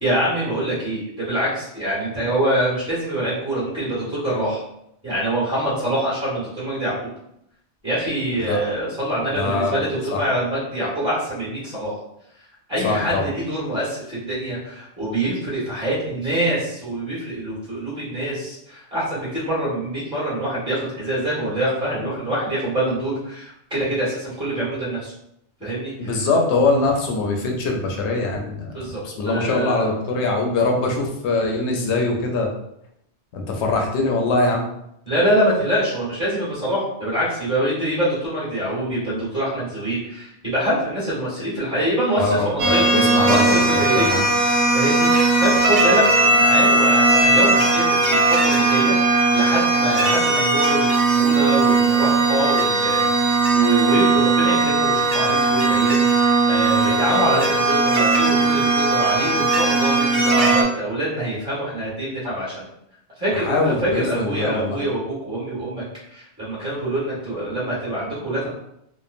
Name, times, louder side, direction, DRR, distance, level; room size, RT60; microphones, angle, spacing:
voice 1, 0.0-4.6 5.0-6.9 7.8-11.9 12.7-25.1 25.6-26.2 28.7-29.9 35.0-44.2 44.7-53.0 53.5-62.6 63.2-65.8 66.1-68.5, right 1 dB, 5° right, -9 dB, 1.3 m, -25 dB
voice 2, 9.3-9.8 10.1-10.2 12.8-13.2 26.0-32.5 33.3-34.6 42.2-43.6 43.9-44.3 63.4-64.8, left 3 dB, 75° left, 2 dB, 0.8 m, -22 dB
sound 1, 42.6-60.6, right 3 dB, 85° right, 0.9 m, -18 dB
3.0 x 2.0 x 2.4 m, 0.77 s
omnidirectional pair, 1.2 m